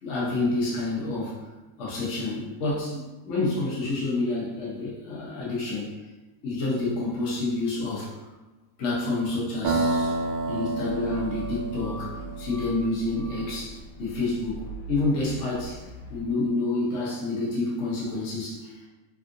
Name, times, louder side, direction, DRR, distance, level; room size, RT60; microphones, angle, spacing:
voice 1, 0.0-1.4 1.8-6.0 6.4-8.2 8.8-10.2 10.5-15.8 16.1-18.8, left 2 dB, 55° left, -6 dB, 0.8 m, -28 dB
sound 1, 9.6-13.4, right 2 dB, 75° right, 1.2 m, -29 dB
sound 2, 10.8-16.2, right 3 dB, 75° left, 1.2 m, -41 dB
3.4 x 2.4 x 2.6 m, 1.1 s
omnidirectional pair, 1.9 m